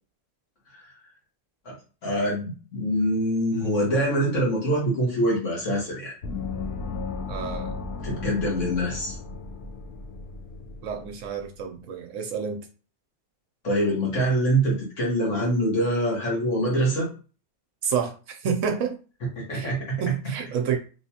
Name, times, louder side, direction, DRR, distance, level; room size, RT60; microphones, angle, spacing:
voice 1, 2.0-6.1 8.0-9.2 13.6-17.1 19.4-20.1, right 1 dB, 60° left, -3 dB, 1.6 m, -24 dB
Gong, 6.2-11.5, left 4 dB, 85° left, 1.2 m, -35 dB
voice 2, 7.3-7.7 10.8-12.7 17.8-19.0 19.5-19.7 20.0-20.8, right 7 dB, 70° right, 4 dB, 0.8 m, -29 dB
3.2 x 3.0 x 2.8 m, 0.35 s
omnidirectional pair, 1.5 m